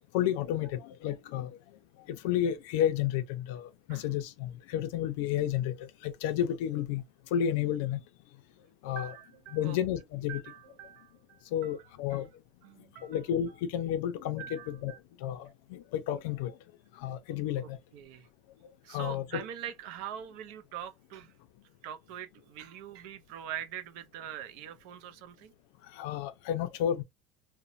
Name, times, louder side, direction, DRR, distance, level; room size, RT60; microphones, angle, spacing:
voice 1, 0.1-1.6 2.1-7.0 7.3-8.0 8.8-9.1 9.5-10.4 11.5-12.3 13.0-14.9 15.2-16.5 17.0-17.8 18.9-19.2 25.9-27.0, left 10 dB, 80° left, 0.4 m, -31 dB
voice 2, 9.0-9.8 10.3-12.3 12.6-13.6 14.4-15.0 17.6-18.3 18.8-21.3 21.8-25.5, right 10 dB, 65° right, 0.4 m, -44 dB
2.9 x 2.0 x 2.5 m
cardioid pair, 170°, 0 cm